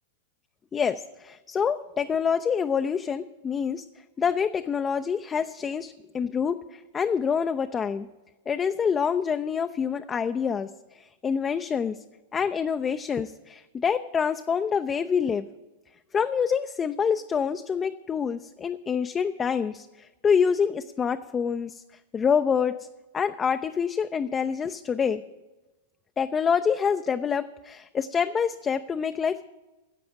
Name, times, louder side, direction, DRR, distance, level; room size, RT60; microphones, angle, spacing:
voice 1, 0.7-3.8 4.2-8.1 8.5-10.7 11.0-12.0 12.3-15.5 16.1-21.8 22.1-22.7 23.1-25.2 26.2-29.5, left 6 dB, 20° left, 9 dB, 0.4 m, -26 dB
10.5 x 7.7 x 9.0 m, 1.2 s
figure-of-eight pair, 100°, 0 cm